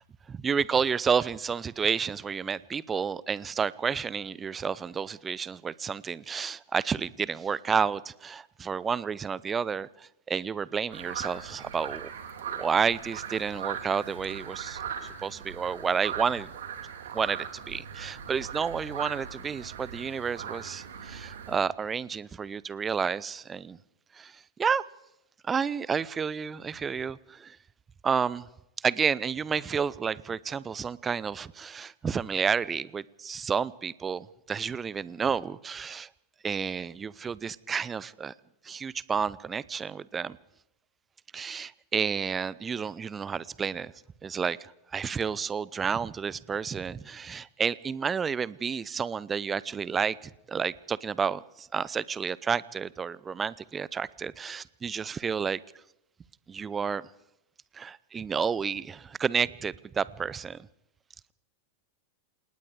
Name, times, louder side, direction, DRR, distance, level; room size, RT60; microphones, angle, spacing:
voice 1, 0.3-12.1 12.6-14.8 15.2-16.5 17.1-23.8 24.1-24.8 25.4-27.6 28.0-28.5 28.8-36.1 36.4-38.3 38.6-40.4 41.3-43.9 44.2-55.6 56.5-57.0 57.7-60.7, right 6 dB, 20° right, 21 dB, 0.7 m, -30 dB
sound 1, 10.9-21.6, right 7 dB, 60° right, 3.1 m, -39 dB
28.5 x 19.0 x 4.9 m, 0.85 s
figure-of-eight pair, 90°, 0 cm